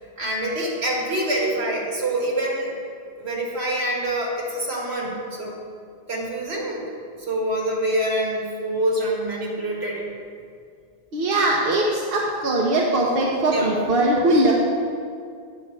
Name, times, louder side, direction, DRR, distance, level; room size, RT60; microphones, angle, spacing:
voice 1, 0.2-2.7 3.2-5.5 6.1-6.9 7.2-10.0 13.5-13.8, right 1 dB, 80° right, -2 dB, 1.9 m, -25 dB
voice 2, 11.1-14.5, right 1 dB, 65° right, -3 dB, 1.1 m, -20 dB
9.2 x 4.5 x 6.8 m, 2.2 s
omnidirectional pair, 1.1 m